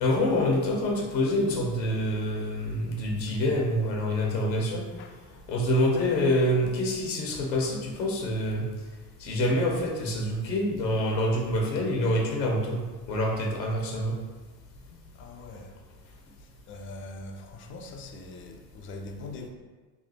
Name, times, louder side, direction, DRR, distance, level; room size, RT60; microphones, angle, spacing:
voice 1, 0.0-4.8 5.5-8.6 9.2-12.8 13.1-14.1, left 1 dB, 85° left, -1 dB, 0.9 m, -26 dB
voice 2, 14.9-15.8 16.4-19.5, left 2 dB, 25° left, 3 dB, 0.4 m, -42 dB
3.2 x 2.4 x 4.0 m, 1.3 s
hypercardioid pair, 70°, 50 cm